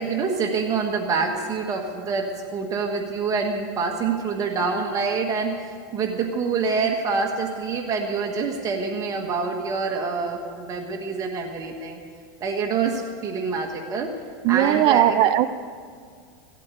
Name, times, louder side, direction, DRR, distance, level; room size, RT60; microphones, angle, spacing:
voice 1, 0.0-12.0 12.4-14.1 14.5-15.3, right 4 dB, 30° right, 3 dB, 1.5 m, -26 dB
voice 2, 14.4-15.5, right 12 dB, 45° right, 12 dB, 0.7 m, -18 dB
16.5 x 8.4 x 8.2 m, 2.1 s
supercardioid pair, 135°, 12 cm